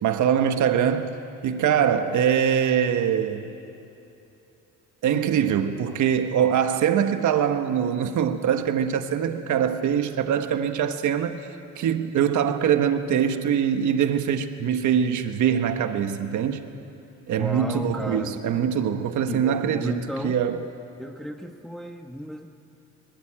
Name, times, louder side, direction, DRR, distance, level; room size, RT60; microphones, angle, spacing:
voice 1, 0.0-1.1 1.4-3.5 5.0-11.4 11.8-16.6 17.3-20.6, right 8 dB, 75° right, 1.4 m, -23 dB
voice 2, 17.4-18.4 19.3-20.4 21.0-22.5, equal, ahead, 1.2 m, -33 dB
24.0 x 20.5 x 8.8 m
cardioid pair, 90°, 30 cm